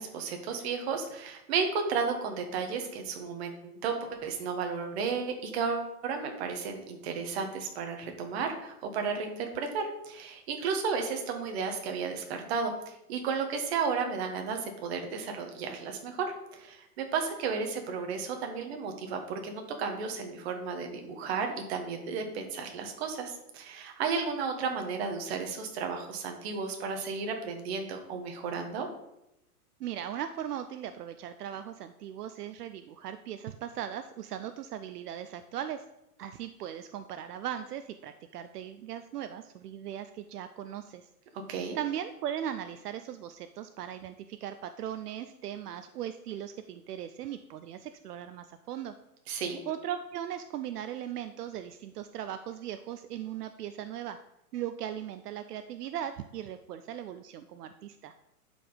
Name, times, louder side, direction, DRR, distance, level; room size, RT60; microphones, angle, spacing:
voice 1, 0.0-28.9 41.5-41.8 49.3-49.6, right 5 dB, 40° right, 4 dB, 1.4 m, -33 dB
voice 2, 29.8-35.8 36.2-41.1 41.7-48.9 49.7-54.2 54.5-58.1, right 10 dB, 75° right, 10 dB, 0.6 m, -38 dB
11.0 x 5.0 x 4.0 m, 0.86 s
hypercardioid pair, 155°, 47 cm